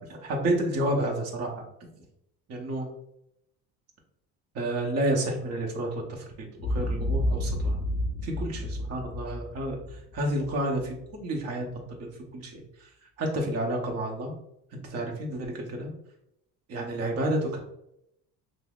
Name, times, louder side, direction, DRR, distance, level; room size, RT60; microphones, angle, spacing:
voice 1, 0.1-1.5 2.5-2.9 4.5-7.8 8.2-9.8 10.1-11.8 12.3-12.6 13.2-14.3 14.7-15.9 16.7-17.6, right 1 dB, 45° right, 0 dB, 0.8 m, -30 dB
Boom, 6.6-10.9, left 1 dB, 30° left, 0.6 m, -30 dB
5.3 x 2.0 x 2.3 m, 0.80 s
cardioid pair, 155°, 35 cm